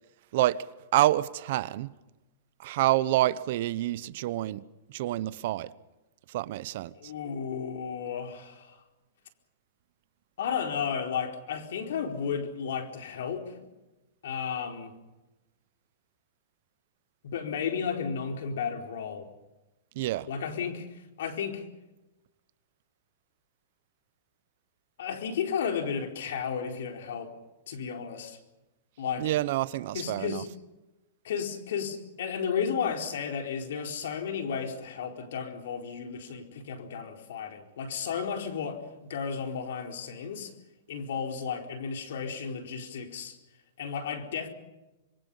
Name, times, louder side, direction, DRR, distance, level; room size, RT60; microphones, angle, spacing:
voice 1, 0.9-1.9 2.6-4.6 4.9-5.7 6.3-7.1 19.9-20.3 29.2-30.4, right 15 dB, 55° right, 0.9 m, -27 dB
voice 2, 6.9-8.8 10.4-13.7 14.2-14.9 17.2-19.3 20.3-21.6 25.0-27.3 27.7-28.4 29.0-29.4 29.9-30.5 31.2-40.5 40.9-43.3 43.8-44.5, left 7 dB, 75° left, 4.4 m, -33 dB
26.0 x 23.5 x 5.6 m
hypercardioid pair, 145°, 0 cm